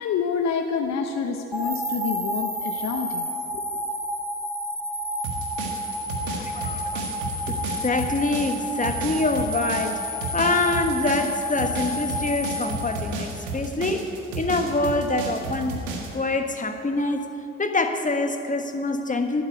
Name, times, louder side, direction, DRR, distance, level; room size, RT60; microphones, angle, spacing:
voice 1, 0.0-3.8, left 6 dB, 55° left, 5 dB, 1.0 m, -28 dB
sound 1, 1.5-13.7, equal, 5° right, 2.4 m, -30 dB
sound 2, 5.2-16.1, right 3 dB, 80° right, 1.6 m, -32 dB
voice 2, 6.3-7.1 7.5-10.0 10.3-14.1 14.3-15.8 16.1-17.3 17.6-19.4, left 2 dB, 25° left, 6 dB, 1.5 m, -25 dB
11.5 x 9.5 x 8.5 m, 2.7 s
hypercardioid pair, 50°, 32 cm